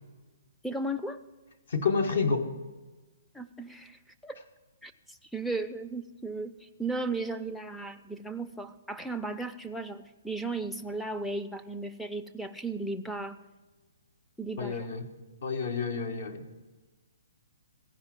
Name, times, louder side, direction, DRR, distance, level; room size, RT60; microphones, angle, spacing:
voice 1, 0.6-1.2 3.3-4.4 4.8-13.4 14.4-14.9, right 2 dB, 5° left, 7 dB, 0.5 m, -35 dB
voice 2, 1.7-2.5 14.6-15.1 15.4-16.6, left 5 dB, 65° left, 4 dB, 1.2 m, -29 dB
15.5 x 5.2 x 7.4 m, 1.2 s
hypercardioid pair, 140°, 0 cm